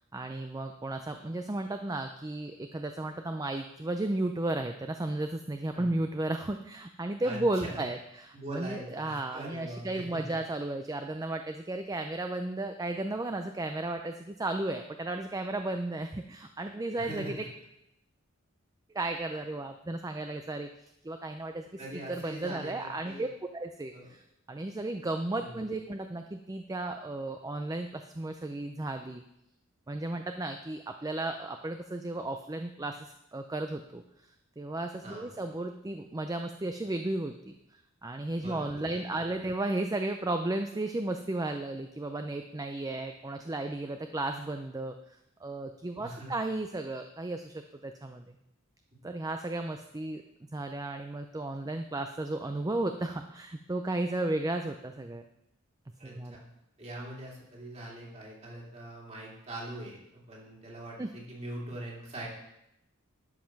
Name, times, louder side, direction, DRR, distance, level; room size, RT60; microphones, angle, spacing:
voice 1, 0.0-17.4 18.9-21.7 22.1-23.3 23.5-24.2 24.5-29.2 29.9-34.0 34.6-37.5 38.0-45.0 45.4-48.4 49.0-50.2 50.5-55.2 56.0-56.4 61.0-61.1, right 2 dB, 15° right, 6 dB, 0.5 m, -34 dB
voice 2, 7.2-7.8 8.3-10.4 17.0-17.5 21.8-23.3 23.9-24.1 25.3-25.8 35.0-35.4 38.4-39.5 46.0-46.3 56.0-56.4 56.8-62.3, right 1 dB, 30° right, -3 dB, 2.7 m, -42 dB
12.0 x 5.3 x 5.9 m, 0.84 s
head